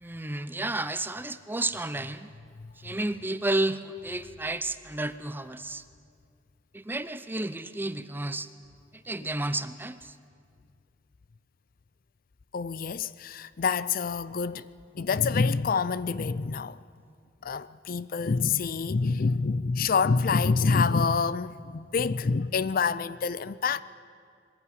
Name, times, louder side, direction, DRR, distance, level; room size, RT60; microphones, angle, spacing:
voice 1, 0.0-2.3 2.8-5.8 6.7-8.5 9.1-10.1, right 2 dB, 10° right, 0.6 m, -31 dB
voice 2, 2.6-2.9 9.2-9.3 12.5-14.7 14.9-16.8 17.4-23.8, left 5 dB, 50° left, 0.5 m, -27 dB
21.5 x 15.5 x 10.0 m
head